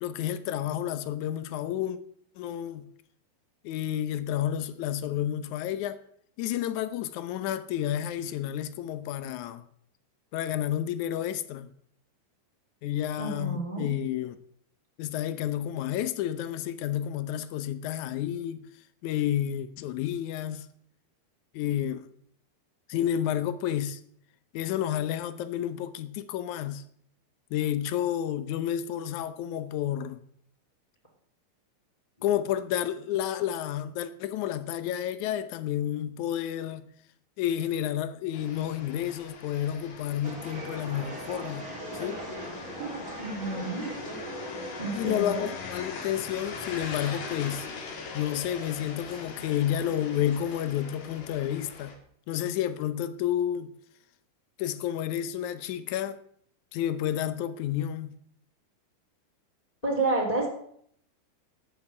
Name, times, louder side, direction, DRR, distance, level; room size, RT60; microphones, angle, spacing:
voice 1, 0.0-2.0 2.4-2.8 3.6-6.0 6.4-9.6 10.3-11.7 12.8-14.4 15.0-18.7 19.0-20.7 21.5-22.1 22.9-24.0 24.5-26.8 27.5-30.2 32.2-36.9 37.4-41.6 41.9-42.2 44.9-47.7 48.1-51.9 52.3-53.7 54.6-56.2 56.7-58.1, left 11 dB, 75° left, 1.8 m, -30 dB
voice 2, 13.2-13.9 22.9-23.0 43.2-43.8 44.8-45.5 59.8-60.5, right 2 dB, 10° left, 3.1 m, -29 dB
sound 1, 38.3-52.0, left 4 dB, 60° left, 3.4 m, -41 dB
sound 2, 40.2-45.2, right 2 dB, 25° right, 3.0 m, -39 dB
12.5 x 7.9 x 8.9 m
omnidirectional pair, 4.5 m